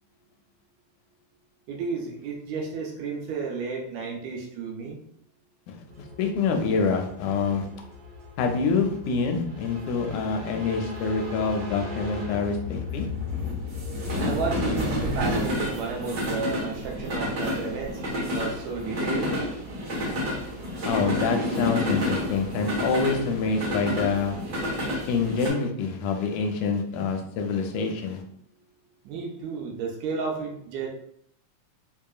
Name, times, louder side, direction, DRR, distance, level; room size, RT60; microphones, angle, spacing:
voice 1, 1.7-5.0 14.2-19.4 29.1-30.9, right 4 dB, 75° right, 0 dB, 1.8 m, -32 dB
sound 1, 6.0-25.5, left 1 dB, 60° right, 1.0 m, -30 dB
voice 2, 6.2-7.7 8.4-13.1 20.8-24.4 25.1-28.2, left 5 dB, 85° left, 4 dB, 2.0 m, -26 dB
4.8 x 2.8 x 2.3 m, 0.69 s
omnidirectional pair, 3.5 m